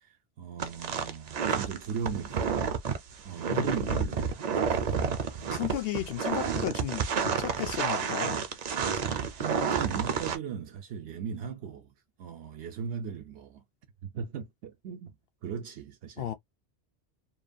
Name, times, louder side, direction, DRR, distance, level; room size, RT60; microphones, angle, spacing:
voice 1, 0.0-2.7 3.2-4.3 4.5-5.0 5.3-5.5 9.1-11.9 12.2-13.6 14.0-15.2 15.4-16.3, right 7 dB, 80° right, 0.9 m, -38 dB
sound 1, 0.6-10.4, right 6 dB, 55° right, 0.5 m, -30 dB
voice 2, 3.5-4.0 5.5-8.4 16.2-16.3, left 11 dB, 65° left, 0.7 m, -34 dB
2.9 x 2.2 x 2.5 m
omnidirectional pair, 1.1 m